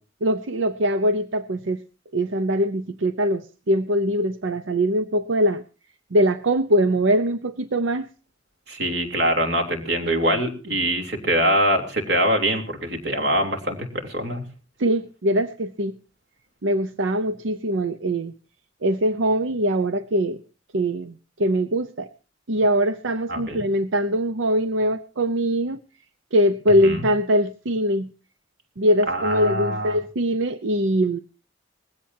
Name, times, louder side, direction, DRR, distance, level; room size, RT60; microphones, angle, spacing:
voice 1, 0.2-1.8 2.1-5.6 6.1-8.1 14.8-16.0 16.6-18.3 18.8-20.4 20.7-22.1 22.5-25.8 26.3-28.1 28.8-31.2, equal, 85° right, 12 dB, 0.7 m, -22 dB
voice 2, 8.7-14.4 23.3-23.6 26.8-27.1 29.1-30.0, right 1 dB, 60° right, 4 dB, 3.3 m, -23 dB
20.0 x 16.0 x 2.8 m, 0.35 s
head